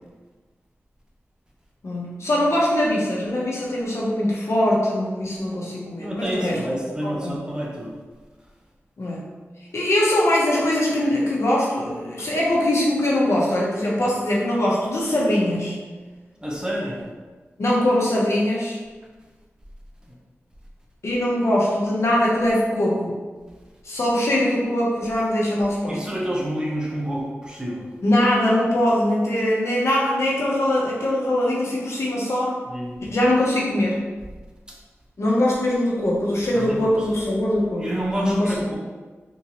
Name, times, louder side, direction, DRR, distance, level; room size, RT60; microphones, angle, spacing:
voice 1, 1.8-6.6 7.2-7.4 9.0-9.3 9.7-15.8 17.6-18.8 21.0-23.2 23.8-26.0 28.0-32.6 33.0-34.0 35.2-37.9 38.2-38.5, left 1 dB, 70° left, -4 dB, 0.8 m, -22 dB
voice 2, 6.0-7.9 16.4-17.0 25.9-27.9 32.7-33.0 34.7-34.8 36.5-36.9 37.8-38.7, equal, 15° right, -3 dB, 0.7 m, -28 dB
3.7 x 2.7 x 2.9 m, 1.3 s
wide cardioid pair, 70°, 5 cm